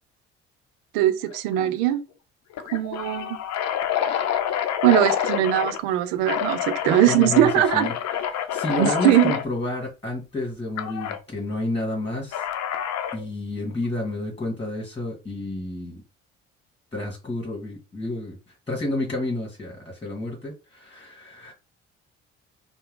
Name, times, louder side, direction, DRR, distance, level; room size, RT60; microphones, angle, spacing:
voice 1, 0.9-2.0 2.7-3.4 4.8-7.9 8.8-9.4, right 13 dB, 65° right, 0.6 m, -20 dB
sound 1, 1.3-1.6 1.9-2.0 2.5-5.8 6.2-9.4 10.8-11.2 12.3-13.3, left 10 dB, 50° left, 0.7 m, -27 dB
voice 2, 7.0-7.9 8.3-12.4 13.1-16.0 16.9-18.4 18.7-21.5, left 2 dB, 15° left, 2.0 m, -30 dB
4.4 x 2.3 x 3.7 m
figure-of-eight pair, 50°, 33 cm